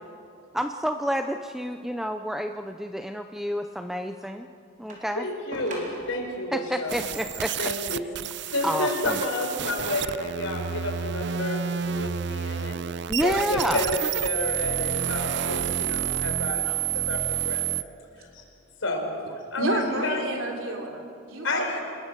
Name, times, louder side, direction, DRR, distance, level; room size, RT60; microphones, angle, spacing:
voice 1, 0.5-4.5 4.8-5.3 6.5-7.5 8.6-9.2 13.1-13.8 16.6-16.8, equal, ahead, 7 dB, 0.5 m, -29 dB
sound 1, 4.9-6.3 7.8-9.1 9.9-10.0, right 1 dB, 40° right, 4.2 m, -43 dB
voice 2, 5.1-7.0 7.6-8.1 8.5-11.6 11.9-12.8 13.2-16.6 16.9-17.7 18.2-18.4 18.8-19.1 19.5-20.3 21.4-21.8, left 2 dB, 70° left, 2 dB, 4.7 m, -30 dB
sound 2, 6.9-17.8, right 9 dB, 55° right, 0.5 m, -29 dB
voice 3, 19.5-21.8, right 2 dB, 85° right, 2 dB, 3.4 m, -29 dB
27.0 x 21.5 x 6.7 m, 2.5 s
head